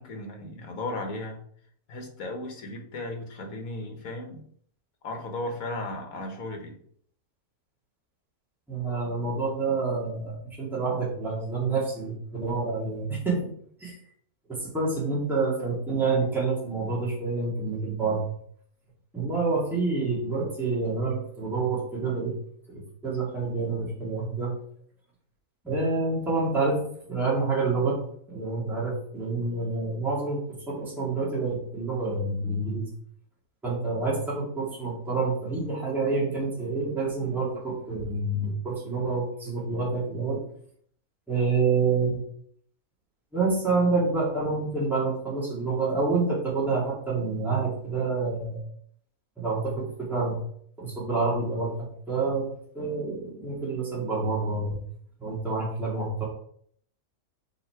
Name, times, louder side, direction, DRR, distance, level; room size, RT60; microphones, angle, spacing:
voice 1, 0.0-1.4 1.9-4.4 5.0-6.8, left 2 dB, 75° left, 4 dB, 1.6 m, -35 dB
voice 2, 8.7-13.5 13.8-14.0 14.5-18.2 19.1-22.4 22.7-24.5 25.6-26.8 27.1-28.0 28.3-30.4 30.7-32.8 33.6-40.4 41.3-42.2 43.3-48.6 49.4-50.4 50.8-51.7 52.1-52.5 52.7-54.8 55.2-56.2, right 3 dB, ahead, -7 dB, 2.1 m, -28 dB
5.5 x 4.1 x 4.6 m, 0.63 s
omnidirectional pair, 1.5 m